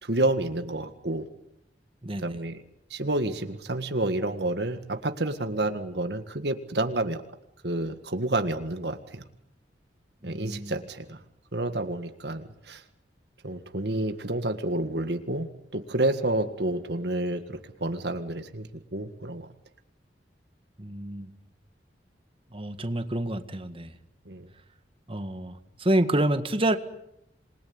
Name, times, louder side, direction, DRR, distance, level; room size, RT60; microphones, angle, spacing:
voice 1, 0.0-1.3 2.2-2.6 2.9-7.2 7.6-9.2 10.2-11.2 11.5-12.8 13.4-19.5 24.3-24.5, right 2 dB, 65° right, 8 dB, 1.8 m, -29 dB
voice 2, 2.0-2.4 10.2-10.8 20.8-21.3 22.5-23.9 25.1-26.8, right 1 dB, 30° right, 9 dB, 1.8 m, -28 dB
27.5 x 21.5 x 9.6 m, 0.77 s
head